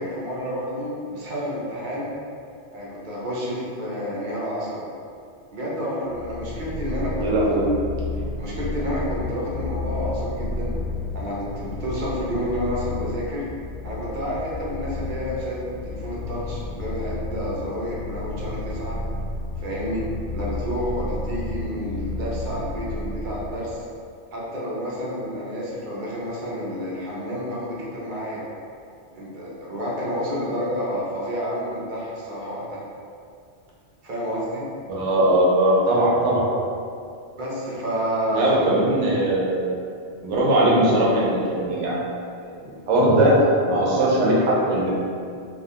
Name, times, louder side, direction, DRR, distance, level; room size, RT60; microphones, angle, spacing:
voice 1, 0.0-2.1 2.7-4.9 5.5-7.5 8.1-10.7 11.1-13.5 13.8-19.0 19.6-20.0 20.3-23.8 24.3-28.4 29.1-32.8 34.0-34.6 37.4-38.6, equal, 55° right, -5 dB, 0.6 m, -29 dB
Purr, 6.1-23.8, left 2 dB, 75° left, 0.9 m, -31 dB
voice 2, 7.2-7.7 34.9-36.5 38.3-39.6 40.2-42.0 42.6-43.4 43.7-44.9, right 1 dB, 85° right, -5 dB, 0.9 m, -20 dB
2.3 x 2.1 x 2.8 m, 2.4 s
omnidirectional pair, 1.2 m